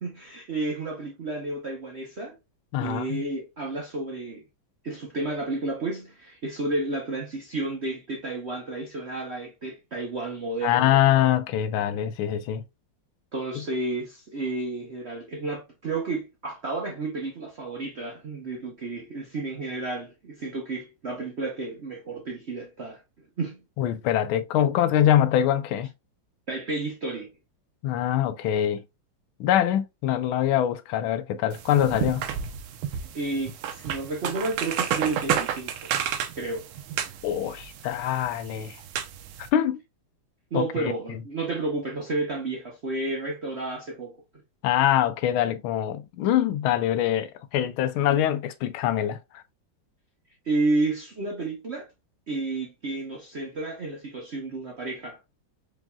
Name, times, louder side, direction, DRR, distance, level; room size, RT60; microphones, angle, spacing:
voice 1, 0.0-2.4 2.8-4.5 4.8-11.0 13.3-23.0 23.4-23.6 26.5-27.3 32.9-35.9 36.4-36.7 40.5-44.2 50.4-51.9 52.3-55.2, right 2 dB, 55° right, 0.7 m, -31 dB
voice 2, 2.7-3.2 10.6-12.6 13.6-13.7 23.8-25.9 27.8-28.8 29.4-32.2 37.2-38.8 39.4-39.8 40.5-40.9 44.6-49.4, left 11 dB, 90° left, 1.4 m, -24 dB
sound 1, 31.5-39.5, right 9 dB, 90° right, 1.4 m, -31 dB
4.9 x 3.1 x 2.2 m
omnidirectional pair, 2.2 m